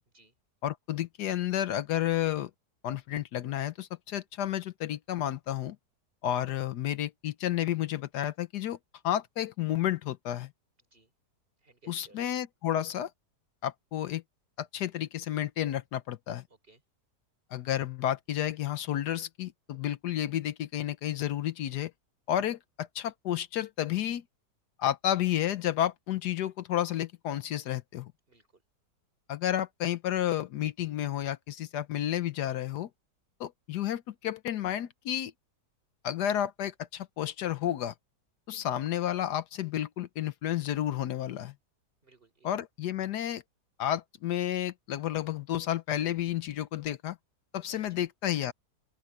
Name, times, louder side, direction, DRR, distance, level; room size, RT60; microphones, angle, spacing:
voice 1, 0.6-2.5 2.8-5.8 6.2-8.8 9.0-10.5 11.9-13.1 13.6-14.2 14.6-16.4 17.5-21.9 22.3-24.2 24.8-28.1 29.3-32.9 33.4-35.3 36.0-37.9 38.5-41.5 42.4-43.4 43.8-47.2 47.5-48.5, left 11 dB, 75° left, 1.3 m, -31 dB
voice 2, 11.6-12.2 16.5-16.8 28.3-28.6 42.0-42.5 47.7-48.1, right 3 dB, 30° right, 4.1 m, -60 dB
open air
omnidirectional pair, 1.8 m